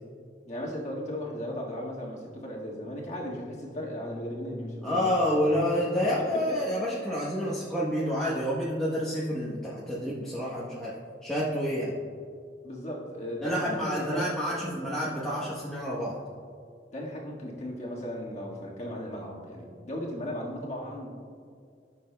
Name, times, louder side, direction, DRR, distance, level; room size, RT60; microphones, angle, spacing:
voice 1, 0.4-5.6 6.2-6.7 12.6-14.2 14.5-14.9 16.9-21.1, equal, 40° left, -3 dB, 1.6 m, -36 dB
voice 2, 4.8-10.9 11.2-11.9 13.4-16.2, equal, 5° left, -8 dB, 0.9 m, -29 dB
14.0 x 6.6 x 2.2 m, 2.3 s
head